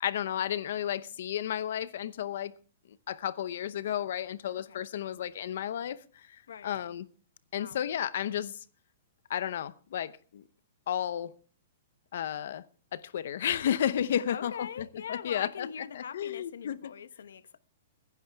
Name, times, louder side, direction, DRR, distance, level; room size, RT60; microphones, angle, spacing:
voice 1, 0.0-2.5 3.1-7.1 7.5-8.6 9.3-10.4 10.9-11.3 12.1-12.6 12.9-15.7 15.9-16.9, left 10 dB, 55° left, 0.7 m, -32 dB
voice 2, 14.1-17.6, left 7 dB, 85° left, 0.9 m, -42 dB
21.5 x 10.5 x 3.4 m
hypercardioid pair, 175°, 0 cm